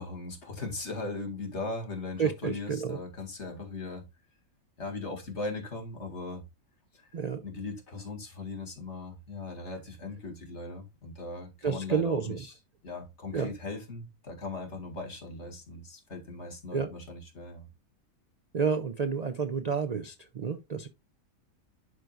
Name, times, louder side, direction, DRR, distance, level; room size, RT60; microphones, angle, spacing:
voice 1, 0.0-4.0 4.8-6.4 6.9-7.0 7.4-12.5 12.8-17.7, left 3 dB, 50° left, 2.2 m, -39 dB
voice 2, 2.2-3.0 7.1-7.4 11.6-12.4 13.3-13.5 16.7-16.9 18.5-20.9, right 6 dB, 75° right, 0.3 m, -30 dB
11.0 x 4.6 x 2.4 m
omnidirectional pair, 1.5 m